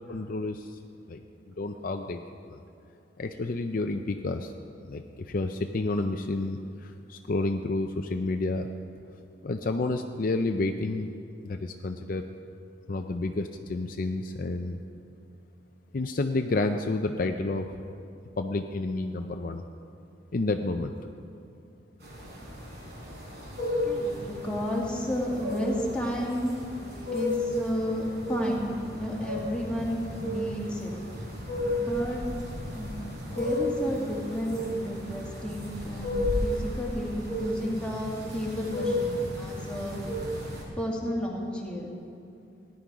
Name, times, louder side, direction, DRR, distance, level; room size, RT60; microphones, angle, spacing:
voice 1, 0.1-0.8 1.1-1.2 1.5-2.2 2.5-2.6 3.2-4.5 4.9-8.7 9.4-11.1 11.4-12.3 12.9-14.8 15.9-17.7 18.4-19.7 20.3-20.9, left 2 dB, 50° left, 5 dB, 0.5 m, -30 dB
sound 1, 22.0-40.6, left 1 dB, 60° right, 4.1 m, -33 dB
voice 2, 23.8-26.5 27.1-30.9 31.8-32.2 32.7-40.0 40.8-41.9, left 1 dB, 5° left, -4 dB, 2.0 m, -32 dB
17.0 x 10.5 x 4.8 m, 2.6 s
head